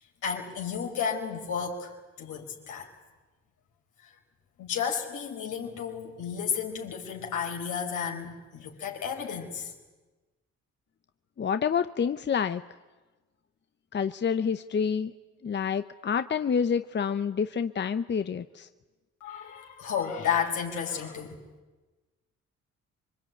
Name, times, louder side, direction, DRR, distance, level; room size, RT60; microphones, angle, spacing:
voice 1, 0.2-2.9 4.0-4.1 4.6-9.7 19.2-21.4, left 7 dB, 80° left, 2 dB, 4.9 m, -32 dB
voice 2, 11.4-12.6 13.9-15.1 15.4-18.7, left 7 dB, 35° left, 11 dB, 0.8 m, -28 dB
26.0 x 23.5 x 9.2 m, 1.2 s
cardioid pair, 90°, 30 cm